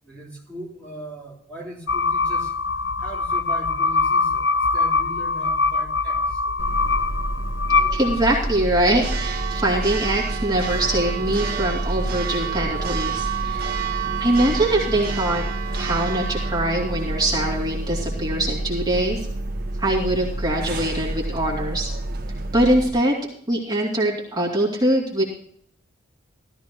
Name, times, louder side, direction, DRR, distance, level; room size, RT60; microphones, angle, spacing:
voice 1, 0.0-2.5 3.0-6.4, right 1 dB, 10° left, -2 dB, 3.0 m, -39 dB
sound 1, 1.9-8.6, left 4 dB, 65° left, 0.7 m, -23 dB
Church bell, 6.6-22.9, right 3 dB, 55° right, 1.6 m, -28 dB
voice 2, 7.9-13.8 14.2-15.4 15.7-19.3 19.8-21.9 22.5-23.2 23.5-25.2, right 1 dB, 20° right, -4 dB, 2.5 m, -23 dB
15.5 x 13.5 x 3.0 m, 0.66 s
head